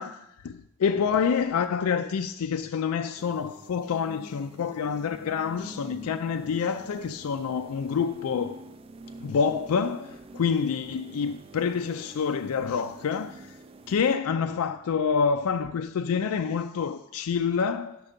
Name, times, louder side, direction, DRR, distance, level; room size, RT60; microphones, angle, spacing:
voice 1, 0.0-8.6 9.2-13.6 13.9-18.0, left 6 dB, 80° left, 0.4 m, -27 dB
sound 1, 3.2-14.2, right 1 dB, 25° right, 0.3 m, -47 dB
12.0 x 6.5 x 5.1 m
head